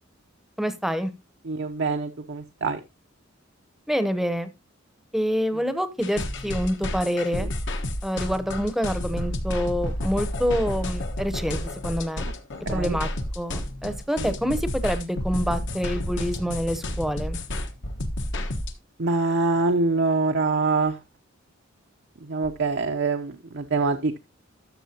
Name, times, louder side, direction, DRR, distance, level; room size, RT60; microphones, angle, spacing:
voice 1, 0.6-1.1 3.9-4.5 5.1-7.5 8.0-12.3 12.7-13.1 13.4-17.4, equal, ahead, 11 dB, 0.8 m, -27 dB
voice 2, 1.4-2.8 7.3-7.5 12.7-13.0 14.2-14.3 19.0-21.0 22.2-24.2, right 3 dB, 60° right, 5 dB, 0.7 m, -25 dB
sound 1, 6.0-18.7, left 1 dB, 65° left, 1.3 m, -30 dB
12.5 x 6.6 x 2.8 m, 0.23 s
head